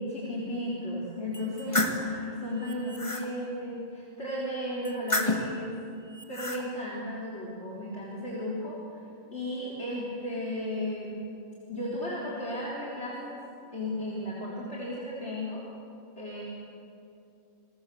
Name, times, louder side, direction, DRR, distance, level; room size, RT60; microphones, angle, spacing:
voice 1, 0.0-5.7 6.3-9.0 9.3-11.2 11.7-13.4 13.7-15.6 16.2-16.4, left 1 dB, 55° left, -5 dB, 4.2 m, -34 dB
sound 1, 1.3-2.0 2.6-3.3 4.8-5.5 6.1-6.6, left 1 dB, 25° left, 2.0 m, -30 dB
29.5 x 21.5 x 7.0 m, 2.6 s
omnidirectional pair, 1.4 m